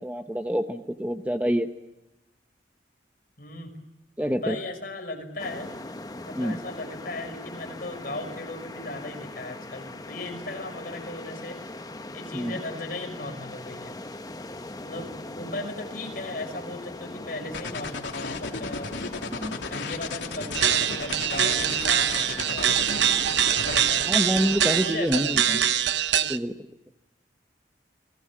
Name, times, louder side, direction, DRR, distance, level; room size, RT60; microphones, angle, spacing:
voice 1, 0.0-1.7 4.2-4.6 6.3-6.6 12.3-12.6 19.3-19.6 24.1-25.6 26.1-26.5, equal, 10° right, 6 dB, 1.0 m, -27 dB
voice 2, 3.4-3.8 4.2-5.7 6.2-11.6 12.1-14.0 14.8-18.9 19.7-23.0 23.5-24.1 24.8-25.6, left 2 dB, 50° left, 4 dB, 5.7 m, -37 dB
sound 1, 5.4-24.9, left 2 dB, 20° left, 0.9 m, -40 dB
sound 2, 17.5-23.8, left 4 dB, 85° left, 2.9 m, -34 dB
sound 3, 20.5-26.4, right 10 dB, 75° right, 0.9 m, -24 dB
30.0 x 21.5 x 7.6 m, 0.93 s
head